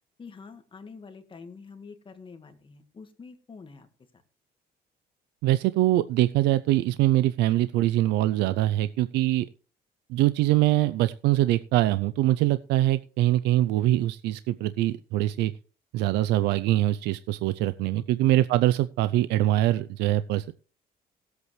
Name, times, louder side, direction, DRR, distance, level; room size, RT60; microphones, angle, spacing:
voice 1, 0.2-3.9 18.0-18.4, left 5 dB, 30° left, 7 dB, 1.8 m, -46 dB
voice 2, 5.4-9.5 10.1-15.5 15.9-20.5, right 15 dB, 85° right, 13 dB, 0.4 m, -23 dB
18.0 x 8.1 x 3.2 m, 0.39 s
cardioid pair, 110°, 17 cm